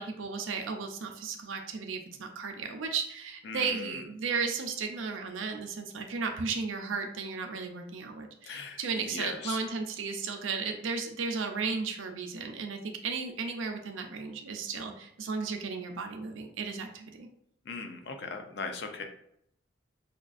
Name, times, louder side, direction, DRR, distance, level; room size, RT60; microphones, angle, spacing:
voice 1, 0.0-17.3, right 5 dB, 90° right, 4 dB, 0.5 m, -35 dB
voice 2, 3.4-4.0 8.5-9.6 17.7-19.0, left 4 dB, 60° left, 6 dB, 0.5 m, -39 dB
5.0 x 2.3 x 2.4 m, 0.72 s
head